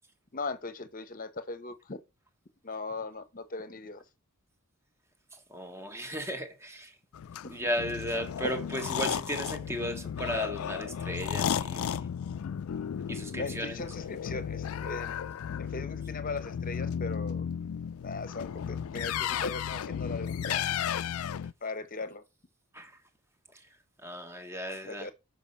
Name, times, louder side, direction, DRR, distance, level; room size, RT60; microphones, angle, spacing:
voice 1, 0.3-2.0 2.6-4.0 7.4-7.5 13.3-15.1 15.6-17.5 18.0-20.7 21.6-22.2 24.8-25.1, left 3 dB, 40° left, 0.9 m, -39 dB
voice 2, 5.3-6.9 7.5-12.1 13.1-13.9 22.7-22.9 24.0-25.1, equal, 10° right, 1.2 m, -35 dB
sound 1, 7.1-21.5, left 8 dB, 80° left, 0.4 m, -34 dB
7.1 x 5.4 x 5.2 m
head